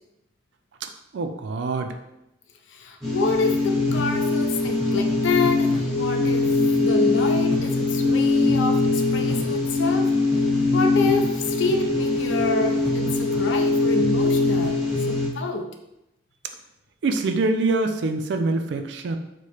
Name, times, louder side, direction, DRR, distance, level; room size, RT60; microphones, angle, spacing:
voice 1, 1.1-1.9 17.0-19.2, right 3 dB, 65° right, 6 dB, 0.3 m, -24 dB
voice 2, 2.7-10.2 10.7-15.8, left 3 dB, 75° left, 5 dB, 0.4 m, -28 dB
sound 1, 3.0-15.3, left 2 dB, ahead, 0.9 m, -22 dB
4.7 x 2.1 x 2.9 m, 0.87 s
head